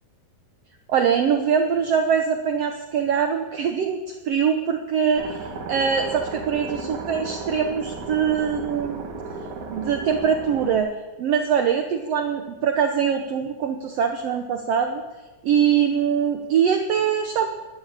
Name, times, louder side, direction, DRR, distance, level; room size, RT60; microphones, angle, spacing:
voice 1, 0.9-9.1 9.7-10.9 11.2-15.0 15.4-17.5, right 7 dB, 80° right, 5 dB, 1.4 m, -23 dB
sound 1, 5.1-10.8, right 4 dB, 60° right, 2.9 m, -34 dB
12.0 x 12.0 x 8.6 m, 1.2 s
omnidirectional pair, 4.0 m